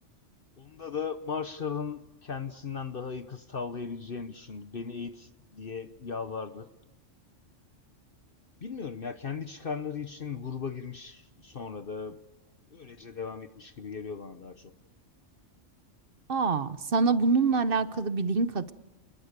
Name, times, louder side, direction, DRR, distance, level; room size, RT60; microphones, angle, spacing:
voice 1, 0.6-6.7 8.6-12.2 12.7-14.7, left 6 dB, 50° left, 9 dB, 1.1 m, -37 dB
voice 2, 16.3-18.7, right 4 dB, 50° right, 13 dB, 1.1 m, -25 dB
28.5 x 21.0 x 6.7 m, 1.0 s
omnidirectional pair, 1.3 m